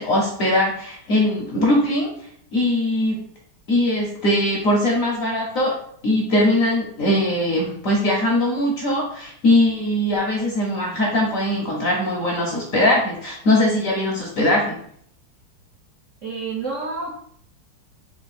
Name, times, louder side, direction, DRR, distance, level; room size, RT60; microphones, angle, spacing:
voice 1, 0.0-2.1 2.5-3.2 3.7-5.7 6.0-14.8, left 1 dB, 60° left, -2 dB, 0.9 m, -20 dB
voice 2, 16.2-17.2, right 4 dB, 70° right, -2 dB, 0.7 m, -29 dB
4.6 x 2.5 x 4.0 m, 0.66 s
omnidirectional pair, 2.2 m